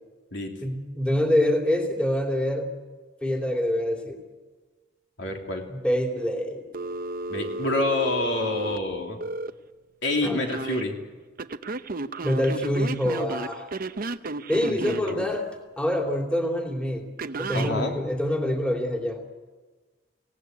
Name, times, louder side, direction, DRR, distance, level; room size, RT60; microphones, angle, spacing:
voice 1, 0.6-2.7 3.2-4.2 5.7-6.7 10.2-10.4 12.2-13.7 14.5-15.5 15.8-17.1 17.4-19.2, left 1 dB, 5° left, 1 dB, 2.9 m, -25 dB
voice 2, 5.2-5.7 7.3-9.2 10.0-11.0 14.7-15.3 17.5-17.9, left 2 dB, 65° left, 2 dB, 3.4 m, -27 dB
Telephone, 6.7-9.5 10.2-10.8 11.4-15.1 17.2-17.7, right 3 dB, 50° right, 0.8 m, -33 dB
26.5 x 17.5 x 9.4 m, 1.3 s
head